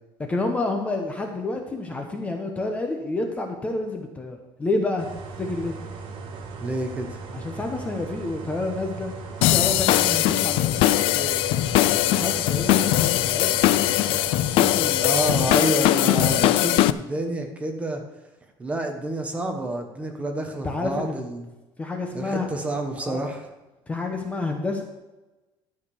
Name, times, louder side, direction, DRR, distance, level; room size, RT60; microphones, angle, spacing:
voice 1, 0.3-5.1 5.4-5.8 7.3-9.1 9.4-11.4 11.9-14.2 14.5-15.5 20.6-21.2 21.8-22.5 23.0-23.2 23.9-24.8, left 2 dB, 15° left, 3 dB, 0.9 m, -29 dB
sound 1, 5.0-15.3, right 4 dB, 55° right, 1.5 m, -38 dB
voice 2, 6.6-7.2 15.0-18.0 18.6-21.4 22.1-23.5, right 1 dB, 15° right, 4 dB, 1.0 m, -28 dB
sound 2, 9.4-16.9, left 14 dB, 65° left, 0.4 m, -20 dB
12.0 x 5.1 x 6.9 m, 1.1 s
cardioid pair, 175°, 10 cm